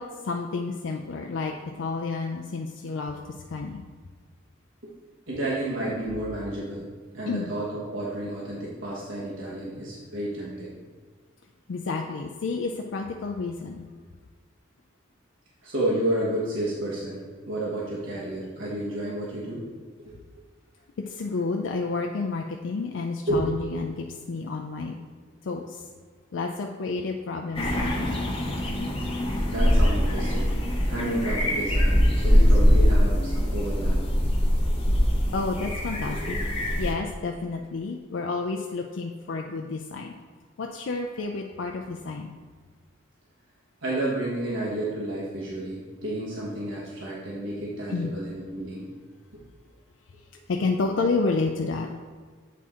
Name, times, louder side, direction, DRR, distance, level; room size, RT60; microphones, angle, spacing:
voice 1, 0.0-3.2 3.5-3.8 7.3-7.5 11.7-13.9 21.1-25.0 25.4-25.8 26.3-28.2 35.3-36.4 36.8-40.1 40.6-42.3 47.9-48.1 50.5-52.0, left 3 dB, 70° left, 2 dB, 0.4 m, -30 dB
voice 2, 5.3-6.9 7.1-10.7 15.6-19.6 20.0-20.1 23.3-23.5 29.5-30.5 30.9-34.0 36.1-36.4 43.8-48.9, right 1 dB, 75° right, -6 dB, 1.3 m, -31 dB
sound 1, 27.6-36.9, equal, 30° left, 0.9 m, -22 dB
8.3 x 4.3 x 3.6 m, 1.6 s
head